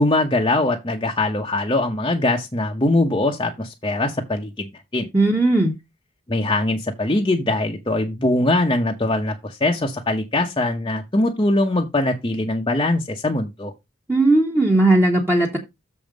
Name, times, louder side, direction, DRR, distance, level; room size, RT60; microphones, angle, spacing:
voice 1, 0.0-5.1 6.3-13.7, left 2 dB, 25° left, 0.9 m, -22 dB
voice 2, 5.1-5.7 14.1-15.6, right 2 dB, 10° right, 1.2 m, -17 dB
7.0 x 5.2 x 5.1 m
head